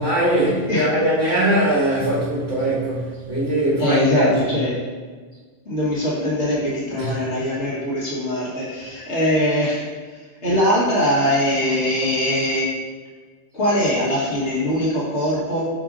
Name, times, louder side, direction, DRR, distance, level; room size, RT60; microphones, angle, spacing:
voice 1, 0.0-4.6 7.0-7.2, right 1 dB, 75° right, -10 dB, 2.1 m, -21 dB
voice 2, 3.8-4.7 5.7-12.6 13.5-15.6, left 1 dB, 90° left, -7 dB, 2.0 m, -22 dB
6.7 x 5.2 x 2.6 m, 1.4 s
omnidirectional pair, 1.1 m